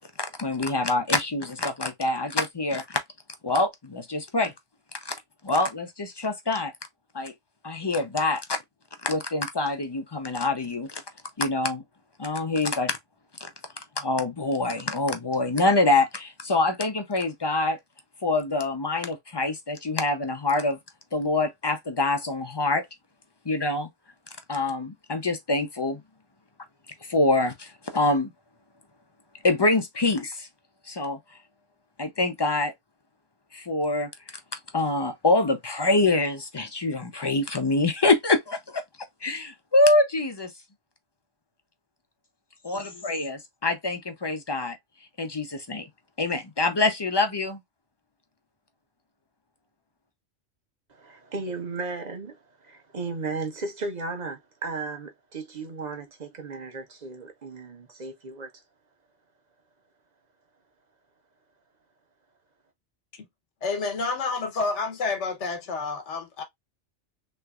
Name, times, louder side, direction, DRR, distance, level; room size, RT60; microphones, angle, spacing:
voice 1, 0.4-3.0 3.4-4.5 5.0-5.1 5.4-6.7 7.1-7.3 7.6-8.4 9.0-11.0 11.4-11.8 12.2-13.0 13.4-13.5 14.0-17.8 18.2-20.8 21.1-22.8 23.5-23.9 24.5-26.0 27.1-28.3 29.4-30.5 30.9-31.2 32.0-32.7 33.5-34.1 34.7-38.8 39.2-40.5 42.6-44.8 45.2-45.9 46.2-47.6, left 2 dB, 35° left, 0.4 m, -25 dB
voice 2, 50.9-58.5, right 3 dB, 40° right, 1.0 m, -35 dB
voice 3, 63.6-66.4, left 4 dB, 80° left, 1.2 m, -29 dB
3.4 x 3.2 x 2.3 m
omnidirectional pair, 1.2 m